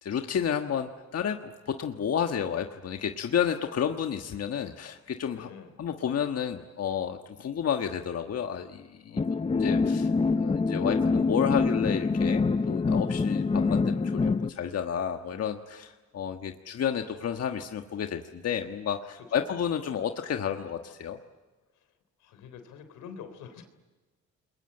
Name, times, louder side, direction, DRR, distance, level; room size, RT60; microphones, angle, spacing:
voice 1, 0.0-5.5 5.8-21.2, left 8 dB, 55° left, 5 dB, 1.5 m, -31 dB
voice 2, 5.3-5.7 9.1-9.7 10.3-10.7 14.7-14.8 19.2-19.5 21.7-21.9 22.2-23.7, left 7 dB, 90° left, 9 dB, 3.6 m, -48 dB
sound 1, 9.2-14.5, left 4 dB, 20° left, 0.8 m, -25 dB
28.5 x 22.0 x 8.8 m, 1.3 s
cardioid pair, 90°, 30 cm